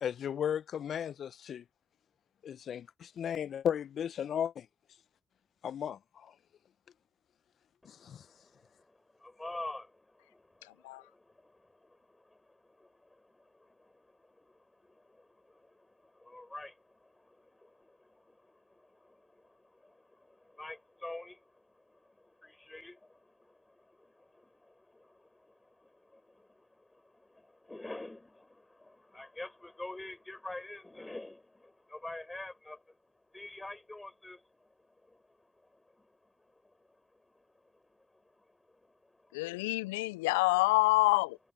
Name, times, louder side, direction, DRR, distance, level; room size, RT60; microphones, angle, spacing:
voice 1, 0.0-1.6 2.4-4.7 5.6-6.3 7.8-8.2, left 8 dB, 60° left, 0.8 m, -35 dB
voice 2, 7.8-9.9 10.5-11.1 11.4-33.0 33.3-36.5 36.8-36.9 37.2-37.4 37.7-39.7, left 2 dB, 20° left, 7.0 m, -49 dB
voice 3, 39.3-41.4, left 23 dB, 85° left, 0.4 m, -27 dB
hypercardioid pair, 45°, 0 cm